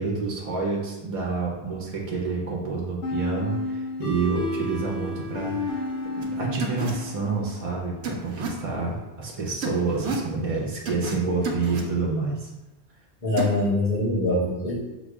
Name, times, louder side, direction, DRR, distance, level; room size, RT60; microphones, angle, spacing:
voice 1, 0.0-5.8 6.1-12.5, right 4 dB, 35° right, -2 dB, 0.7 m, -28 dB
sound 1, 3.0-7.7, left 2 dB, 85° left, 1.3 m, -31 dB
sound 2, 6.2-6.3 6.6-6.9 8.0-8.5 9.6-10.2 10.9-11.1 11.4-11.8 13.4-13.6, right 3 dB, 90° right, 1.0 m, -30 dB
voice 2, 13.2-14.9, left 1 dB, 45° left, -7 dB, 1.4 m, -24 dB
5.7 x 2.3 x 3.5 m, 1.1 s
omnidirectional pair, 1.1 m